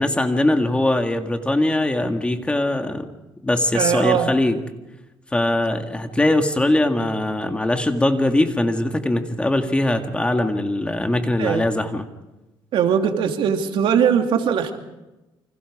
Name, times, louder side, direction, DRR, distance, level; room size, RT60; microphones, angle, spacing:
voice 1, 0.0-3.1 3.4-4.6 5.3-12.1, left 1 dB, 10° left, 5 dB, 1.9 m, -21 dB
voice 2, 3.7-4.3 11.4-11.7 12.7-14.7, right 8 dB, 75° right, 4 dB, 2.8 m, -20 dB
29.0 x 25.5 x 4.9 m, 0.99 s
cardioid pair, 130°, 9 cm